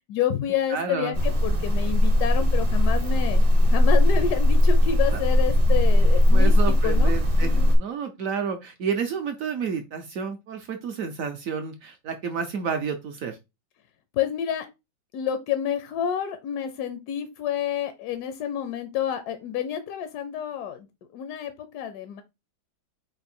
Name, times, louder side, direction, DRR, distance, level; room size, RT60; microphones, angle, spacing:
voice 1, 0.1-7.1 7.4-7.7 14.1-14.7 15.1-20.9 21.1-22.2, left 9 dB, 70° left, 9 dB, 1.0 m, -29 dB
voice 2, 0.7-1.2 6.3-13.4, right 6 dB, 70° right, 6 dB, 0.8 m, -30 dB
sound 1, 1.1-7.8, left 1 dB, 35° right, 0.5 m, -19 dB
4.4 x 2.5 x 4.2 m, 0.23 s
omnidirectional pair, 2.1 m